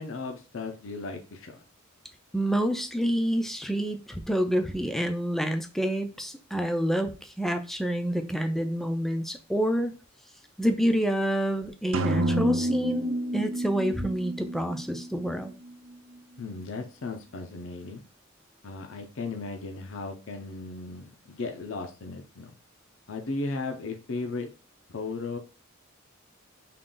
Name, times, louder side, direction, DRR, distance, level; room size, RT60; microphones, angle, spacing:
voice 1, 0.0-1.6 16.4-18.0 18.6-22.5 23.1-24.5 24.9-25.4, left 3 dB, 65° left, 3 dB, 0.5 m, -36 dB
voice 2, 2.3-9.9 10.6-15.5, equal, ahead, 6 dB, 0.4 m, -28 dB
sound 1, 11.9-15.7, right 1 dB, 70° right, 0.4 m, -29 dB
3.7 x 2.3 x 3.8 m, 0.35 s
head